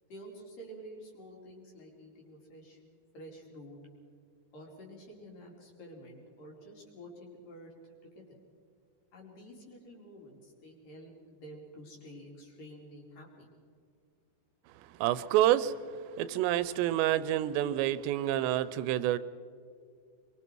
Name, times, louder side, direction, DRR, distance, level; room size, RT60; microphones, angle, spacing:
voice 1, 0.1-2.8 3.1-3.8 4.5-7.7 8.0-8.4 9.1-13.5, equal, 50° left, -1 dB, 4.6 m, -50 dB
voice 2, 14.7-19.2, right 13 dB, 90° right, 15 dB, 2.9 m, -28 dB
25.5 x 22.5 x 4.6 m, 2.2 s
omnidirectional pair, 4.9 m